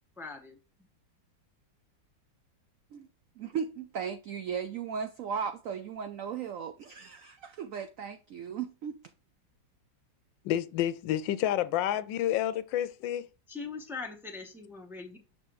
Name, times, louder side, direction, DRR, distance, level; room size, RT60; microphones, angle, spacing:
voice 1, 0.2-0.6 13.5-15.2, left 4 dB, ahead, 0.5 m, -41 dB
voice 2, 3.4-9.0, right 7 dB, 85° right, 0.7 m, -36 dB
voice 3, 10.4-13.3, left 12 dB, 80° left, 1.3 m, -29 dB
6.6 x 5.8 x 3.1 m
omnidirectional pair, 2.0 m